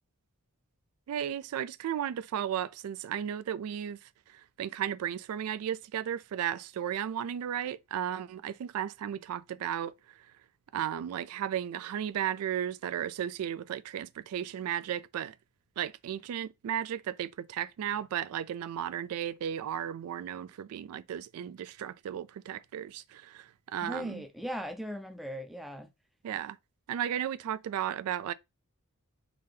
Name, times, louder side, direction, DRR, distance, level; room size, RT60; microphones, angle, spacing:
voice 1, 1.1-4.0 4.3-9.9 10.7-15.3 15.8-24.2 26.2-26.6 26.9-28.3, right 9 dB, 75° right, 0.3 m, -34 dB
voice 2, 23.8-25.9, equal, ahead, 0.4 m, -38 dB
3.9 x 2.7 x 3.2 m
head